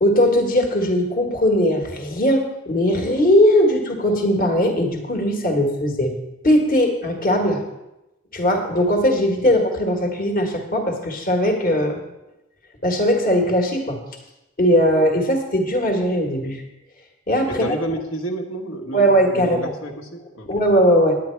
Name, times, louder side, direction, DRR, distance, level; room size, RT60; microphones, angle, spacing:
voice 1, 0.0-6.1 6.4-7.6 8.3-12.0 12.8-14.0 14.6-16.6 17.3-17.7 18.9-19.6 20.5-21.2, equal, 45° left, 2 dB, 1.5 m, -19 dB
voice 2, 17.5-20.5, right 1 dB, 70° left, 1 dB, 1.4 m, -30 dB
9.9 x 9.3 x 4.5 m, 0.94 s
head